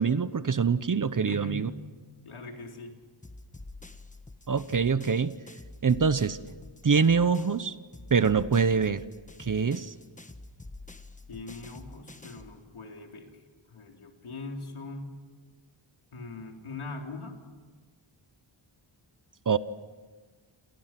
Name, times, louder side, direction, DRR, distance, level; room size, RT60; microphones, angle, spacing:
voice 1, 0.0-1.7 4.5-5.3 5.8-6.4 6.8-7.7 8.1-9.0 9.4-9.9 19.5-19.6, right 5 dB, 40° right, 14 dB, 0.9 m, -24 dB
voice 2, 1.3-1.7 2.2-2.9 11.3-13.4 13.7-15.1 16.1-17.4, left 3 dB, 85° left, 2 dB, 3.9 m, -41 dB
sound 1, 3.2-7.6 7.9-12.6, left 2 dB, 15° left, 1.4 m, -47 dB
29.0 x 28.0 x 6.0 m, 1.4 s
wide cardioid pair, 105°, 49 cm